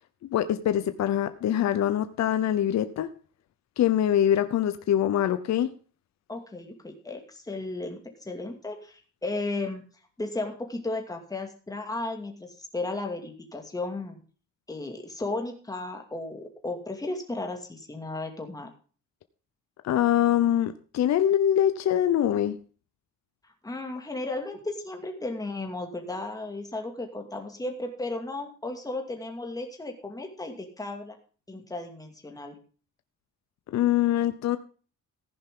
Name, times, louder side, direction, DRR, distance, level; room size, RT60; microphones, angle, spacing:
voice 1, 0.2-3.1 3.8-5.7 19.8-22.6 33.7-34.6, left 11 dB, 60° left, 10 dB, 0.8 m, -24 dB
voice 2, 6.3-9.8 10.2-14.2 14.7-18.7 23.6-31.1 31.5-32.6, left 2 dB, 10° left, 3 dB, 2.4 m, -34 dB
15.0 x 10.5 x 3.8 m, 0.39 s
cardioid pair, 170°, 32 cm